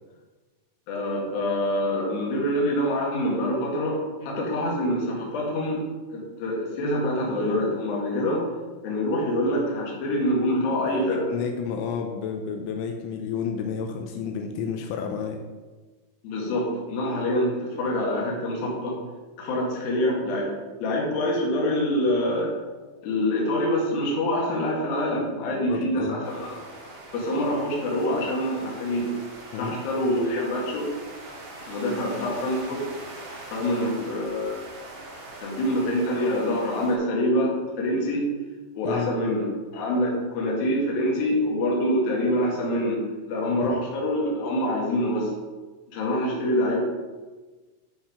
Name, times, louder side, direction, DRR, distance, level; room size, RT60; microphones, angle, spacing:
voice 1, 0.9-5.8 6.1-8.4 8.8-11.3 16.2-19.0 19.4-20.5 20.8-22.5 23.0-26.5 27.1-29.1 29.6-30.9 31.7-32.8 33.5-34.6 35.4-38.3 38.7-39.5 39.7-43.0 43.3-45.3 45.9-46.8, left 1 dB, 55° left, -3 dB, 3.4 m, -25 dB
voice 2, 10.9-15.4 25.5-26.2 29.5-29.8 38.8-39.1 43.5-43.7, left 6 dB, 85° left, 3 dB, 3.1 m, -31 dB
sound 1, 26.2-36.9, right 2 dB, 70° right, 1.4 m, -42 dB
12.0 x 4.5 x 5.0 m, 1.3 s
omnidirectional pair, 5.6 m